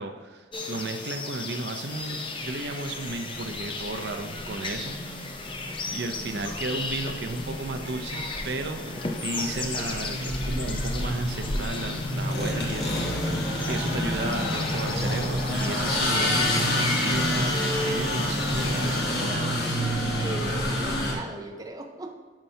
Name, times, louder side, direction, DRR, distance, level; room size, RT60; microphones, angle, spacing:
voice 1, 0.0-5.3 5.9-19.7, right 2 dB, 70° right, 7 dB, 0.6 m, -34 dB
sound 1, 0.5-19.0, left 3 dB, 30° left, 0.6 m, -35 dB
sound 2, 2.4-2.5 2.9-21.1, left 1 dB, 65° left, 1.4 m, -29 dB
voice 2, 20.2-22.2, right 2 dB, 20° right, 3 dB, 0.4 m, -37 dB
8.8 x 5.5 x 2.7 m, 1.5 s
head